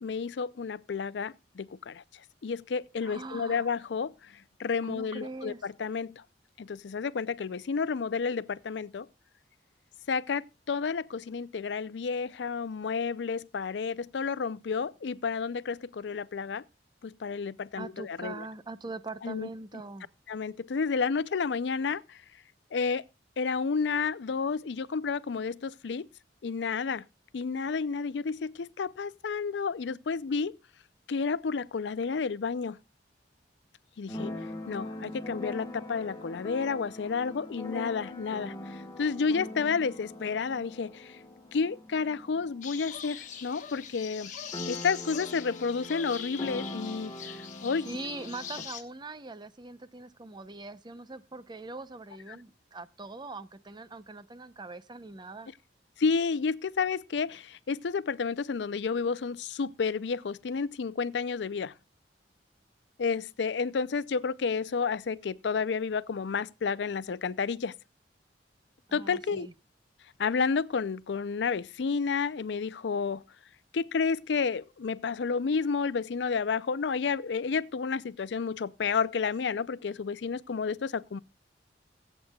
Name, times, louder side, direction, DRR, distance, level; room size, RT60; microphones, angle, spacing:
voice 1, 0.0-2.0 2.4-4.3 4.6-6.2 6.6-9.1 10.1-16.6 17.0-18.4 19.2-19.5 20.3-22.2 22.7-23.0 23.4-26.1 26.4-27.0 27.3-30.6 31.1-32.8 34.0-34.3 34.7-41.2 41.5-44.3 44.7-48.0 56.0-61.7 63.0-67.7 68.9-69.5 70.2-73.2 73.7-81.2, left 5 dB, 75° left, 0.5 m, -31 dB
voice 2, 3.0-3.7 4.8-5.7 17.8-20.1 47.8-55.5 68.9-69.5, right 3 dB, 25° right, 0.6 m, -42 dB
Keyboard (musical), 34.1-43.6 43.9-44.0 44.2-48.6, left 1 dB, 20° left, 1.3 m, -42 dB
sound 1, 42.6-48.8, left 8 dB, 45° left, 1.3 m, -42 dB
24.0 x 8.1 x 2.3 m
head